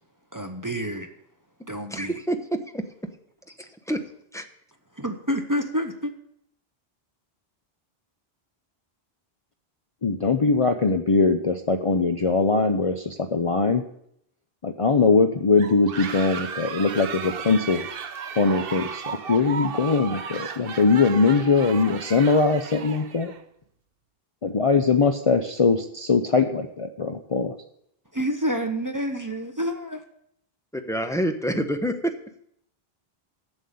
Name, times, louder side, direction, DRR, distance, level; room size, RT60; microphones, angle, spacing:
voice 1, 0.3-1.1 1.7-2.1 5.0-6.1 28.1-30.0, equal, 20° right, 6 dB, 0.8 m, -28 dB
voice 2, 1.9-2.8 3.9-4.0 4.3-4.4 30.7-32.1, right 1 dB, 5° left, 6 dB, 0.8 m, -27 dB
voice 3, 10.0-13.8 14.6-17.9 18.4-23.3 24.5-27.5, left 4 dB, 40° left, 6 dB, 0.6 m, -21 dB
sound 1, 15.6-23.4, right 6 dB, 65° right, 0.9 m, -35 dB
7.6 x 7.1 x 8.4 m, 0.72 s
omnidirectional pair, 1.0 m